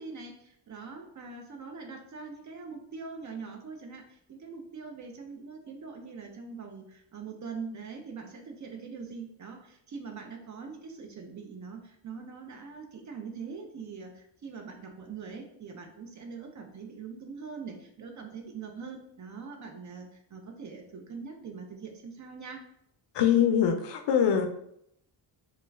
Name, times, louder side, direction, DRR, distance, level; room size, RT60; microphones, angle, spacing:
voice 1, 0.0-22.6, right 5 dB, 40° right, 4 dB, 0.4 m, -43 dB
voice 2, 23.1-24.5, left 8 dB, 60° left, 6 dB, 0.5 m, -23 dB
2.3 x 2.3 x 3.1 m, 0.73 s
wide cardioid pair, 130°, 47 cm